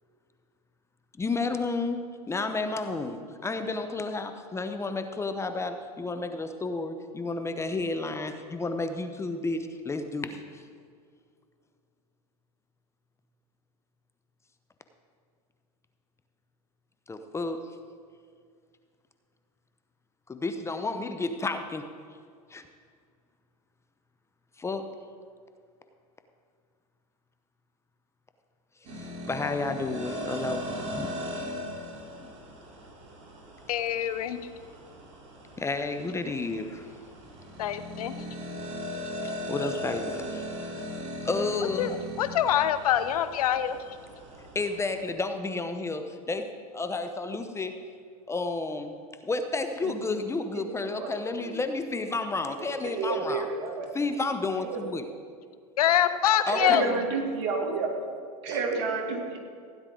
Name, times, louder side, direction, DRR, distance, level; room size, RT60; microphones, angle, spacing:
voice 1, 1.2-10.6 17.1-17.6 20.3-21.9 22.5-22.6 24.6-24.9 28.9-31.5 32.2-32.3 35.6-36.8 39.5-40.9 41.2-41.9 44.5-47.8 48.3-49.0 49.2-53.5 53.9-55.0 56.5-56.9 58.5-58.6, left 3 dB, 15° left, 8 dB, 0.8 m, -31 dB
sound 1, 28.8-45.0, equal, 40° right, 3.7 m, -39 dB
voice 2, 33.7-34.4 37.6-38.2 41.8-43.8 55.8-56.9, left 10 dB, 85° left, 12 dB, 0.8 m, -25 dB
voice 3, 52.6-53.8 54.6-54.9 56.5-57.9 58.4-59.4, right 4 dB, 60° right, 1 dB, 2.6 m, -30 dB
16.0 x 9.9 x 3.9 m, 2.2 s
hypercardioid pair, 110°, 19 cm